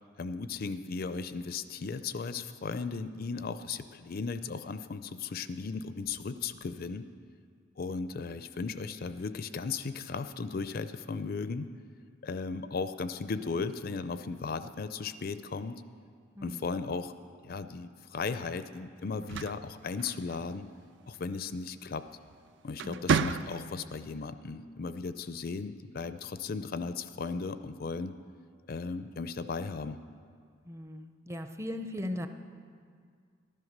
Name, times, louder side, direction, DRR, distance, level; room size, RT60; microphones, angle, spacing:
voice 1, 0.2-7.0 7.8-11.7 12.2-15.8 16.4-17.1 17.4-20.7 21.1-22.1 22.6-28.1 28.7-30.0, left 4 dB, 50° left, 11 dB, 0.4 m, -36 dB
sound 1, 19.1-20.6 22.1-22.3 22.7-23.9, right 5 dB, 60° right, 0.4 m, -32 dB
voice 2, 22.8-23.2 30.7-32.3, left 1 dB, 15° right, 8 dB, 0.6 m, -38 dB
14.0 x 11.0 x 6.5 m, 2.1 s
head